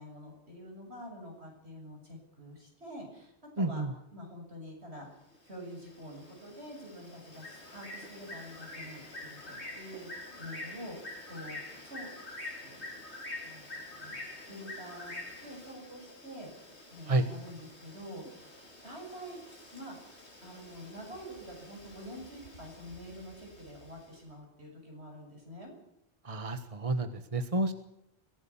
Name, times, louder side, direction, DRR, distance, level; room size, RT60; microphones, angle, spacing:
voice 1, 0.0-5.1 5.4-12.1 12.6-13.0 13.4-16.5 16.9-19.4 19.7-20.1 20.4-25.7, equal, 70° right, 1 dB, 7.6 m, -47 dB
voice 2, 3.6-3.9 17.1-17.2 26.2-27.7, right 2 dB, 30° right, 9 dB, 1.4 m, -30 dB
Bird, 5.3-24.1, left 2 dB, 80° left, 4.6 m, -47 dB
23.0 x 17.5 x 7.1 m, 0.82 s
omnidirectional pair, 1.1 m